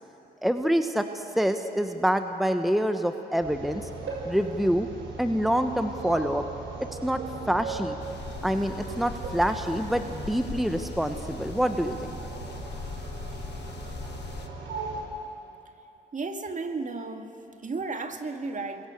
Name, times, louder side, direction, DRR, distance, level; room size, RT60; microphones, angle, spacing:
voice 1, 0.4-3.8 4.2-4.9 5.2-6.4 7.0-7.2 7.5-7.9 8.4-12.2, equal, ahead, 7 dB, 1.3 m, -26 dB
sound 1, 3.4-15.0, right 3 dB, 60° right, 5.7 m, -38 dB
sound 2, 8.0-14.5, left 7 dB, 55° left, 1.5 m, -41 dB
voice 2, 16.1-18.9, right 3 dB, 40° right, 5 dB, 2.2 m, -34 dB
28.5 x 22.0 x 6.8 m, 2.8 s
hypercardioid pair, 45°, 21 cm